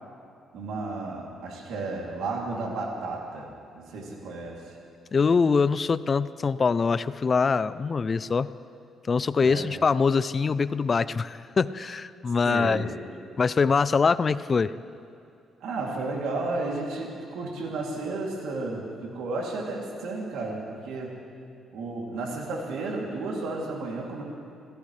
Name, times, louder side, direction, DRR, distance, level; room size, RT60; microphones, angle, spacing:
voice 1, 0.5-3.5 3.7-4.8 9.4-9.7 12.4-12.9 15.6-21.2 21.7-24.2, right 3 dB, 85° right, -1 dB, 2.8 m, -33 dB
voice 2, 5.1-8.5 9.1-12.9 13.4-14.7, left 5 dB, 40° left, 15 dB, 0.4 m, -23 dB
26.0 x 16.5 x 3.3 m, 2.5 s
cardioid pair, 90°, 0 cm